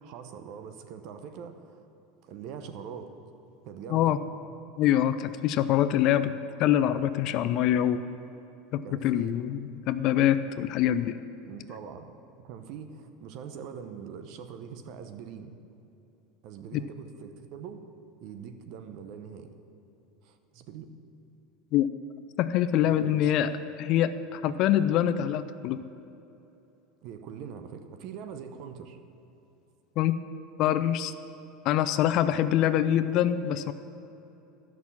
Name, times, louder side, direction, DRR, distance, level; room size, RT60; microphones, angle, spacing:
voice 1, 0.0-1.8 2.2-3.1 3.6-4.2 8.8-9.4 11.5-12.1 12.4-15.6 16.4-17.8 18.2-19.5 20.2-20.9 22.8-23.5 27.0-29.0, right 7 dB, 60° right, 8 dB, 0.9 m, -43 dB
voice 2, 4.8-8.1 8.7-9.6 9.9-11.2 16.7-16.8 21.7-21.9 22.4-23.5 23.8-25.8 30.0-30.2 30.6-31.1 31.6-33.7, left 11 dB, 55° left, 12 dB, 0.5 m, -25 dB
11.5 x 6.1 x 7.3 m, 2.9 s
supercardioid pair, 105°, 0 cm